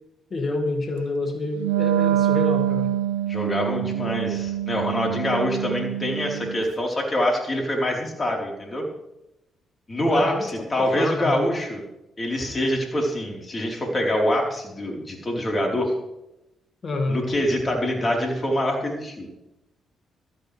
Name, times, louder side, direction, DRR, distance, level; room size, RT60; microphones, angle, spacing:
voice 1, 0.3-3.0 10.1-11.4 16.8-17.2, left 2 dB, 50° left, 5 dB, 2.3 m, -28 dB
Wind instrument woodwind instrument, 1.6-6.7, right 12 dB, 85° right, 0.5 m, -25 dB
voice 2, 3.3-8.9 9.9-11.8 12.2-15.9 17.1-19.3, left 1 dB, 35° left, 0 dB, 4.3 m, -25 dB
15.5 x 13.5 x 3.5 m, 0.91 s
hypercardioid pair, 45°, 0 cm